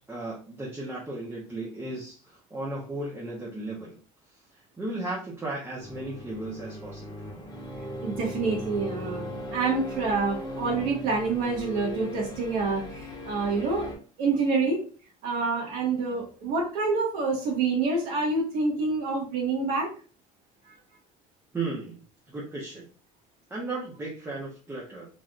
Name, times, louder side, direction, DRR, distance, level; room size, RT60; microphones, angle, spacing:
voice 1, 0.1-4.0 4.8-7.1 21.5-22.0 22.3-22.9 23.5-25.1, right 2 dB, 15° right, -5 dB, 0.8 m, -35 dB
sound 1, 5.8-13.9, equal, 25° left, 1.0 m, -38 dB
voice 2, 8.0-13.9 14.2-14.8 15.2-19.9, right 4 dB, 75° right, -2 dB, 1.3 m, -27 dB
3.2 x 2.5 x 2.4 m, 0.38 s
cardioid pair, 115°, 15 cm